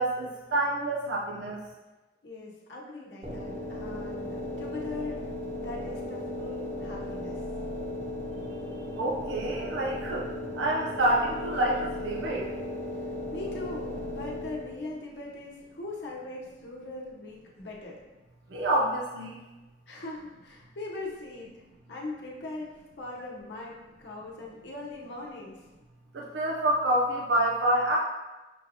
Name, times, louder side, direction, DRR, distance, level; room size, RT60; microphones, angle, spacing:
voice 1, 0.0-1.6 9.0-10.3 10.6-12.5 18.5-19.4 26.1-28.0, right 1 dB, 85° right, -3 dB, 0.5 m, -27 dB
voice 2, 2.2-5.3 5.5-7.4 12.9-18.0 19.9-21.5 21.9-25.6, left 2 dB, 80° left, -3 dB, 0.9 m, -40 dB
sound 1, 3.2-14.9, left 1 dB, 30° right, 0.5 m, -36 dB
6.2 x 2.6 x 2.8 m, 1.1 s
head